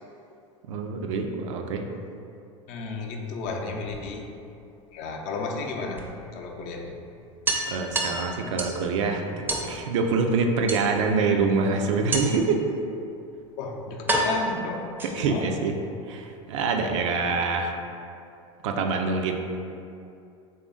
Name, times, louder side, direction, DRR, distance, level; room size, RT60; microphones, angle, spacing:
voice 1, 0.7-1.8 7.7-12.6 15.0-15.8 16.1-17.7 18.6-19.4, right 4 dB, 70° right, 3 dB, 0.4 m, -25 dB
voice 2, 2.7-4.3 4.9-6.0 6.3-6.9 13.6-14.8 15.1-15.7, left 4 dB, 55° left, 1 dB, 0.5 m, -33 dB
sound 1, 3.3-4.5 6.0-6.1 6.5-6.6 6.9-7.0 7.5-8.9 9.5-9.7 10.7-11.2 12.1-12.5 13.4-13.5 14.1-15.4, right 2 dB, 10° right, 0.5 m, -29 dB
3.2 x 2.5 x 3.8 m, 2.6 s
hypercardioid pair, 85°, 16 cm